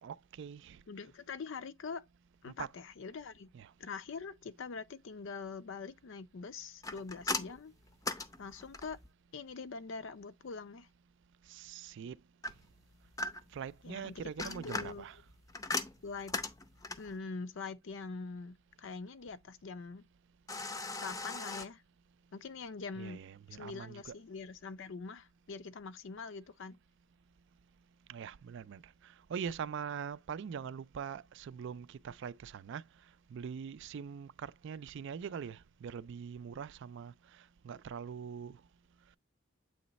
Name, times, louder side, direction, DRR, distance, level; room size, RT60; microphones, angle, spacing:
voice 1, 0.0-0.8 2.5-2.7 3.5-3.7 11.5-12.2 13.5-15.2 23.0-24.1 28.1-32.8 33.3-38.6, right 7 dB, 60° right, 0.3 m, -43 dB
voice 2, 0.9-2.1 2.4-3.5 3.8-7.7 8.4-9.0 9.3-10.9 13.8-15.0 16.0-16.3 17.0-20.0 21.0-21.8 22.3-23.2 23.5-26.8, left 4 dB, 65° left, 0.5 m, -44 dB
sound 1, 6.8-9.1 12.4-13.7 14.2-17.2 20.5-21.7, left 3 dB, 15° left, 0.5 m, -39 dB
7.8 x 3.1 x 4.0 m
head